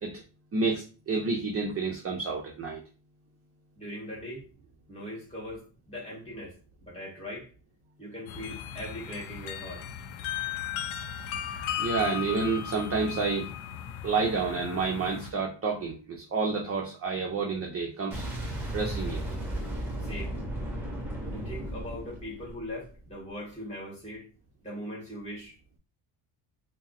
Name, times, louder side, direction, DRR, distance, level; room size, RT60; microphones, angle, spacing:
voice 1, 0.5-2.8 11.8-13.5 14.0-18.2 18.7-19.2, right 4 dB, 30° right, 0 dB, 0.5 m, -29 dB
voice 2, 3.8-4.4 4.9-7.5 8.0-9.9 20.0-20.4 21.3-24.3 24.6-25.6, equal, 15° left, -6 dB, 1.7 m, -40 dB
sound 1, 8.3-15.3, left 10 dB, 70° left, 0.5 m, -36 dB
Boom, 18.1-23.0, right 1 dB, 5° right, 1.0 m, -35 dB
3.6 x 2.0 x 4.0 m, 0.35 s
cardioid pair, 165°, 49 cm